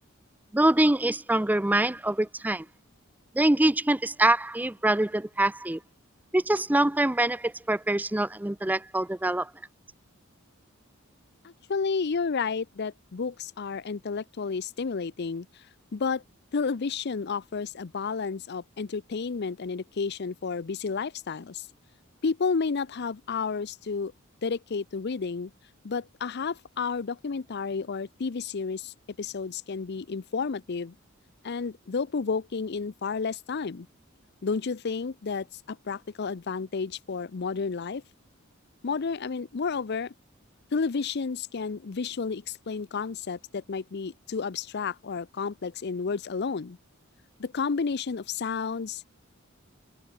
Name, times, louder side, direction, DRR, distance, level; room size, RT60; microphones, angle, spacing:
voice 1, 0.5-2.7 3.3-5.8 6.3-9.5, right 1 dB, 10° right, 0.5 m, -24 dB
voice 2, 11.4-15.5 15.9-16.2 16.5-21.7 22.2-24.1 24.4-25.5 25.8-30.9 31.4-33.9 34.4-38.0 38.8-40.1 40.7-46.8 47.4-49.1, left 5 dB, 50° left, 0.5 m, -31 dB
head